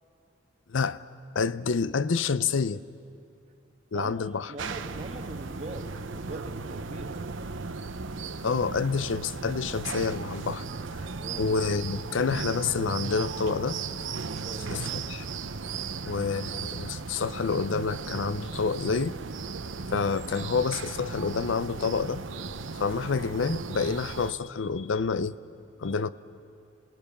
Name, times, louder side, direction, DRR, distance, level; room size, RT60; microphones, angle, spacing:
voice 1, 0.7-1.0 1.3-2.8 3.9-4.5 8.4-10.7 11.0-11.1 11.4-13.8 14.7-15.3 16.1-19.1 19.9-22.2 22.7-25.3 25.8-26.1, left 5 dB, 75° left, 16 dB, 0.6 m, -28 dB
voice 2, 3.9-7.2 11.1-11.5 14.2-14.9 15.7-15.9 19.8-20.0 25.9-26.0, right 2 dB, 35° right, 5 dB, 1.4 m, -42 dB
sound 1, 4.6-24.3, right 4 dB, 75° right, 0.8 m, -36 dB
28.0 x 18.5 x 7.0 m, 2.7 s
head